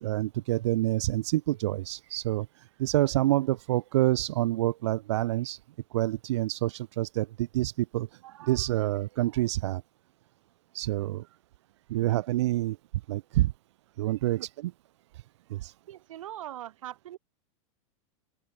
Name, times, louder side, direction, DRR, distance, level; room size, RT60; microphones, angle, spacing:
voice 1, 0.0-2.5 2.8-5.6 5.9-9.8 10.7-11.2 11.9-12.8 13.1-13.5 14.0-14.7 15.5-15.7, right 16 dB, 60° right, 0.7 m, -27 dB
voice 2, 11.9-12.2 14.4-14.5 15.9-17.2, right 12 dB, 90° right, 7.8 m, -42 dB
open air
supercardioid pair, 180°, 16 cm